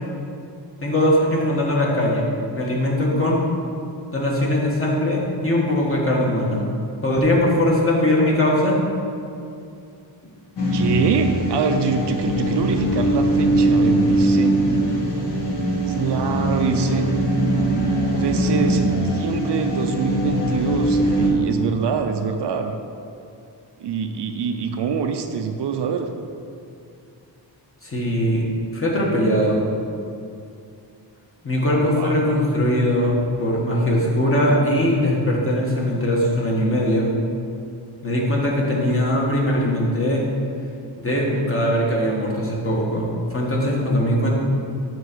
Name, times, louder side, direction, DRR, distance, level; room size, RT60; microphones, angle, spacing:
voice 1, 0.8-2.3 2.5-3.4 4.1-6.6 7.0-8.8 27.8-28.4 28.7-29.6 31.4-37.1 38.0-40.2 41.0-44.3, left 1 dB, 30° left, -3 dB, 1.4 m, -20 dB
sound 1, 10.6-21.3, right 1 dB, 60° left, 1.4 m, -21 dB
voice 2, 10.7-14.6 15.9-17.0 18.1-22.7 23.8-26.1 31.7-32.2, right 6 dB, 65° right, 6 dB, 0.6 m, -25 dB
6.5 x 4.5 x 6.7 m, 2.5 s
wide cardioid pair, 165°, 45 cm